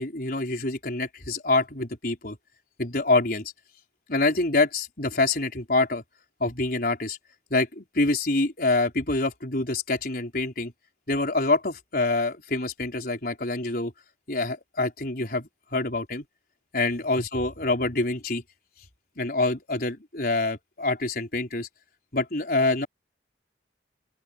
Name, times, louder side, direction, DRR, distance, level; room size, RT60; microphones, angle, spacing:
voice 1, 0.0-2.4 2.8-3.5 4.1-6.0 6.4-7.2 7.5-10.7 11.1-13.9 14.3-16.2 16.7-18.4 19.2-21.7 22.1-22.9, left 2 dB, 55° left, 4.7 m, -26 dB
open air
head